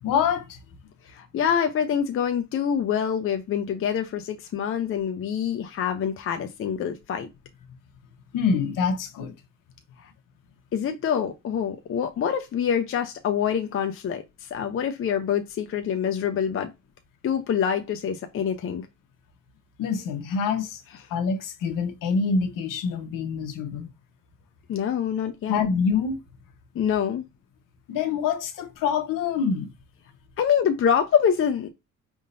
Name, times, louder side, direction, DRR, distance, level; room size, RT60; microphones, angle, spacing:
voice 1, 0.0-0.6 8.3-9.3 19.8-20.8 21.1-23.9 25.5-26.2 27.9-29.7, left 6 dB, 70° left, 1.1 m, -26 dB
voice 2, 1.0-7.3 10.0-10.1 10.7-16.7 17.2-18.9 24.7-25.7 26.7-27.2 30.4-31.7, left 8 dB, 40° left, 0.7 m, -26 dB
5.2 x 3.7 x 2.6 m
cardioid pair, 115°, 34 cm